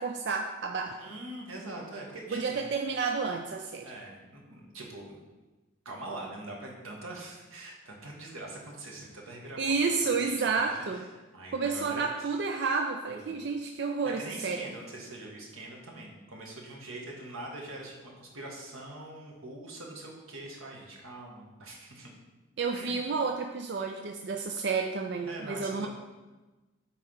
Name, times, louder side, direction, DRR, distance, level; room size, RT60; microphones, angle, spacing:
voice 1, 0.0-1.0 2.3-3.9 9.6-11.0 11.5-14.6 22.6-25.9, right 4 dB, 55° right, 3 dB, 0.4 m, -30 dB
voice 2, 0.9-2.6 3.8-5.2 5.8-9.7 10.0-11.0 11.3-12.4 13.1-13.4 14.0-22.1 22.7-23.0 25.3-25.9, right 2 dB, 90° right, -1 dB, 1.6 m, -43 dB
8.3 x 3.4 x 5.5 m, 1.2 s
head